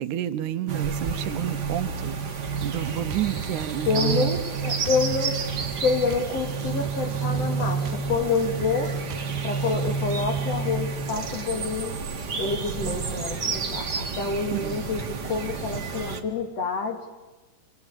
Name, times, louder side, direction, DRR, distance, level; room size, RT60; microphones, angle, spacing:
voice 1, 0.0-2.2 2.6-4.3 14.5-14.8 15.1-15.3, right 12 dB, 85° right, 11 dB, 2.4 m, -30 dB
sound 1, 0.7-16.2, right 5 dB, 40° right, 1.9 m, -29 dB
Drum kit, 2.6-10.6, right 10 dB, 65° right, 2.0 m, -42 dB
voice 2, 3.8-5.4 5.8-8.9 9.4-11.9 12.4-17.1, left 4 dB, 55° left, 4 dB, 3.2 m, -28 dB
26.5 x 20.5 x 8.8 m, 1.2 s
omnidirectional pair, 3.4 m